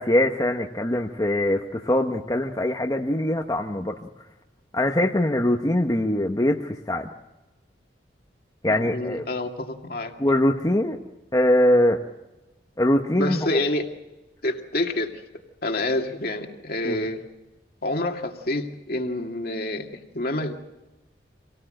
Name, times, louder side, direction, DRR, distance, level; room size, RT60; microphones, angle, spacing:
voice 1, 0.0-4.0 4.7-7.1 8.6-9.3 10.2-11.0 11.3-12.0 12.8-13.5 16.8-17.1, left 1 dB, 20° left, 2 dB, 1.0 m, -22 dB
voice 2, 8.7-10.2 13.2-13.9 14.4-15.2 15.6-17.2 17.8-20.5, left 1 dB, 55° left, 3 dB, 2.2 m, -28 dB
26.5 x 18.0 x 7.8 m, 1.1 s
head